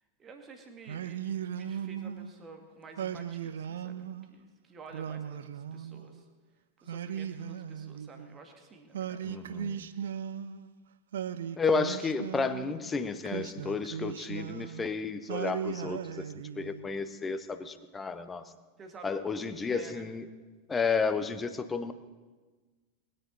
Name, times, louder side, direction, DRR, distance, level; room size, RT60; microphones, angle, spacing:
voice 1, 0.2-6.3 6.8-9.4 18.8-20.1, right 3 dB, 25° right, 4 dB, 2.1 m, -51 dB
Singing, 0.9-2.3 3.0-4.3 4.9-6.2 6.9-8.4 8.9-10.7 11.1-12.8 13.2-14.9 15.3-16.9, right 9 dB, 60° right, 0.5 m, -37 dB
voice 2, 9.2-9.9 11.6-16.2 16.6-18.4 19.0-20.3 20.7-21.9, left 4 dB, 15° left, 11 dB, 0.9 m, -32 dB
21.0 x 10.0 x 4.0 m, 1.3 s
figure-of-eight pair, 90°, 0 cm